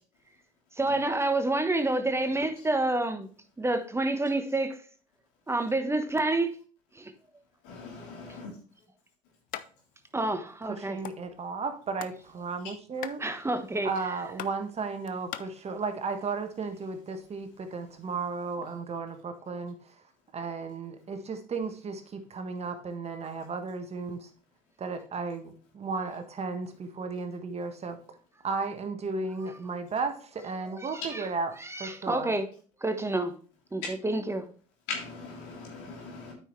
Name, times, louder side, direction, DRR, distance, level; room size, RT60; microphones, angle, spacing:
voice 1, 0.8-3.3 3.6-4.8 5.5-6.5 6.9-7.1 10.1-11.0 13.2-13.9 30.8-30.9 31.6-32.4 32.8-33.3 33.7-34.4, right 2 dB, 15° right, 1.2 m, -28 dB
voice 2, 7.6-8.6 12.6-12.7 33.8-33.9 34.9-36.3, left 4 dB, 75° left, 3.1 m, -40 dB
sound 1, 9.5-9.7 10.0-10.1 10.4-11.2 11.7-12.2 12.5-15.4, left 12 dB, 60° left, 0.6 m, -40 dB
voice 3, 10.6-13.2 13.8-20.0 20.3-24.3 24.8-28.2 28.4-31.5 31.8-32.3, right 4 dB, 40° right, 1.4 m, -34 dB
9.0 x 5.9 x 3.2 m
hypercardioid pair, 65°, 17 cm